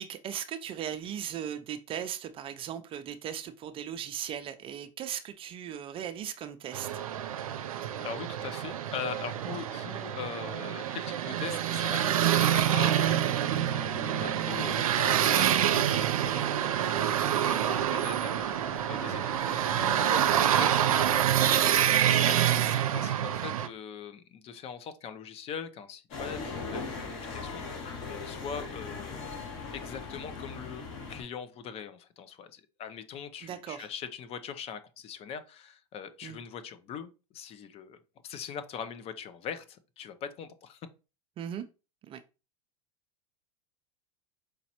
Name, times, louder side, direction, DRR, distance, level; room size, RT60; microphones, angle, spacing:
voice 1, 0.0-6.9 33.4-33.9 36.2-36.4 41.4-41.6 42.1-42.2, right 9 dB, 30° right, 0.4 m, -38 dB
sound 1, 6.7-23.7, right 10 dB, 90° right, 0.5 m, -27 dB
voice 2, 7.6-21.3 21.6-38.0 38.2-40.8, left 7 dB, 35° left, 0.6 m, -42 dB
sound 2, 12.4-21.7, equal, 10° left, 0.9 m, -46 dB
sound 3, 26.1-31.2, left 4 dB, 55° left, 2.5 m, -39 dB
5.0 x 3.0 x 2.8 m
hypercardioid pair, 110°, 17 cm